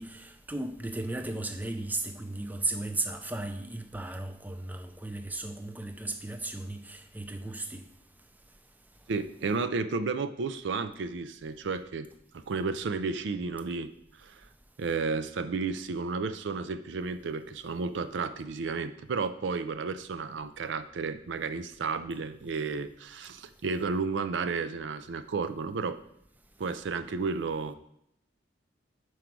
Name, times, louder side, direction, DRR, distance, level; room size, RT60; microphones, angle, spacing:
voice 1, 0.0-7.8, right 2 dB, 10° right, 0.5 m, -35 dB
voice 2, 9.1-12.1 12.3-13.9 14.2-14.5 14.8-26.0 26.6-27.7, right 4 dB, 70° right, 0.4 m, -32 dB
5.1 x 4.7 x 5.9 m
head